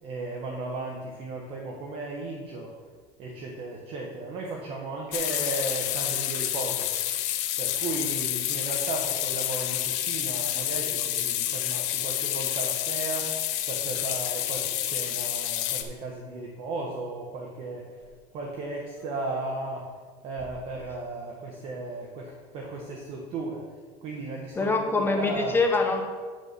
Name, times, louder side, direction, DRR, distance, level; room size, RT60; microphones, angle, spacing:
voice 1, 0.0-2.7 3.2-6.9 7.6-17.9 18.3-19.9 20.2-23.6 24.0-25.6, right 2 dB, 45° right, -1 dB, 1.3 m, -35 dB
sound 1, 5.1-15.8, left 12 dB, 65° left, 0.8 m, -29 dB
voice 2, 24.6-26.0, left 3 dB, 15° left, 2 dB, 0.9 m, -24 dB
9.8 x 4.2 x 6.8 m, 1.5 s
cardioid pair, 140°, 13 cm